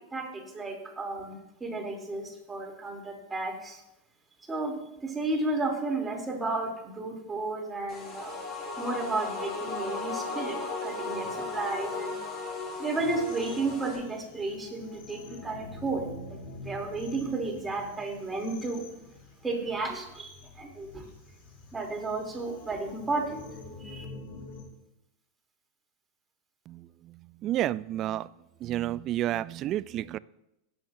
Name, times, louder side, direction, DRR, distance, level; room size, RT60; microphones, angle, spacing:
voice 1, 0.0-3.8 4.5-8.4 8.8-12.2 12.8-16.4 16.6-18.8 19.4-21.0 21.7-23.4 23.8-24.1, right 3 dB, 15° right, 3.1 m, -33 dB
sound 1, 7.9-14.0, left 3 dB, 35° left, 4.6 m, -36 dB
sound 2, 13.0-24.6, left 3 dB, 65° left, 3.1 m, -47 dB
voice 2, 26.7-28.3 28.6-30.2, right 13 dB, 40° right, 0.3 m, -31 dB
19.5 x 8.1 x 2.7 m
hypercardioid pair, 105°, 0 cm